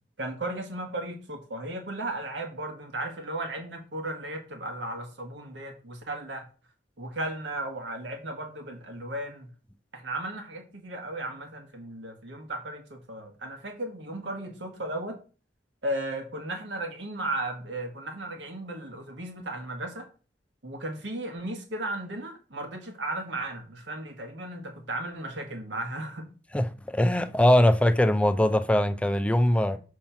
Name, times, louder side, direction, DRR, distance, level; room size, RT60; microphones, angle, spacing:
voice 1, 0.2-6.5 7.0-9.5 9.9-15.2 15.8-20.1 20.6-26.3, right 1 dB, 75° right, 1.3 m, -35 dB
voice 2, 26.5-29.8, left 1 dB, 5° left, 0.3 m, -22 dB
6.5 x 3.0 x 5.6 m
head